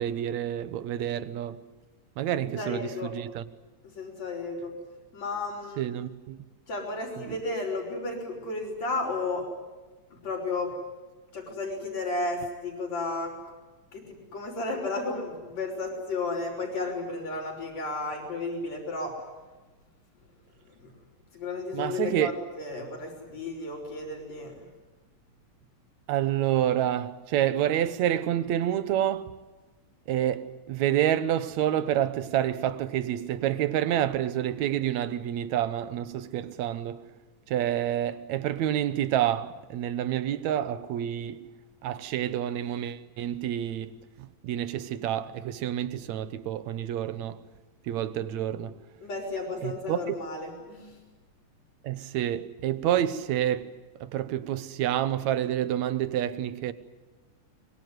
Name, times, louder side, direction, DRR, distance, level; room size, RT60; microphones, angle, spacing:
voice 1, 0.0-1.6 2.2-3.4 5.8-6.4 7.3-7.4 21.7-22.3 26.1-29.4 30.1-37.1 37.5-41.4 41.8-47.5 47.9-48.8 49.6-50.2 51.8-53.7 54.0-56.7, right 11 dB, 75° right, 2.3 m, -28 dB
voice 2, 2.3-3.1 3.8-4.7 5.1-5.8 6.7-9.5 10.1-10.7 11.3-13.3 13.9-19.1 21.3-24.5 49.0-51.0, left 3 dB, 65° left, 5.9 m, -33 dB
24.5 x 22.5 x 9.5 m
omnidirectional pair, 3.3 m